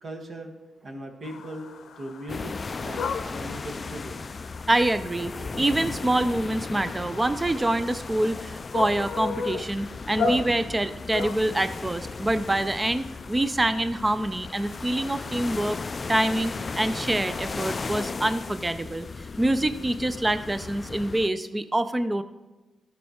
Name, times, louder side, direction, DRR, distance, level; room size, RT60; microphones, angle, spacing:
voice 1, 0.0-0.5 0.8-1.7 2.0-4.2, right 1 dB, 50° right, 2 dB, 1.7 m, -38 dB
sound 1, 1.2-18.1, left 4 dB, 75° left, 0.7 m, -38 dB
sound 2, 2.3-21.3, left 4 dB, 35° left, 0.3 m, -36 dB
voice 2, 4.7-15.8 16.1-19.1 19.4-22.2, right 1 dB, 20° right, 12 dB, 0.6 m, -26 dB
13.5 x 5.6 x 4.4 m, 1.1 s
cardioid pair, 80°, 0 cm